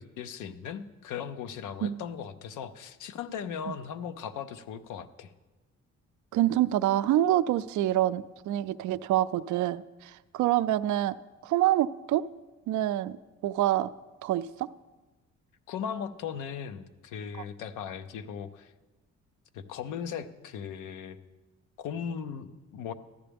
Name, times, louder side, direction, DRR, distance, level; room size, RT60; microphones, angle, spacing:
voice 1, 0.0-5.3 15.7-18.7 19.5-21.2 21.8-22.9, left 7 dB, 85° left, 12 dB, 0.7 m, -38 dB
voice 2, 6.3-11.2 11.4-12.2 12.7-13.2 13.4-13.9 14.2-14.7, right 13 dB, 75° right, 15 dB, 0.4 m, -26 dB
13.5 x 9.9 x 3.5 m, 1.2 s
cardioid pair, 90°, 30 cm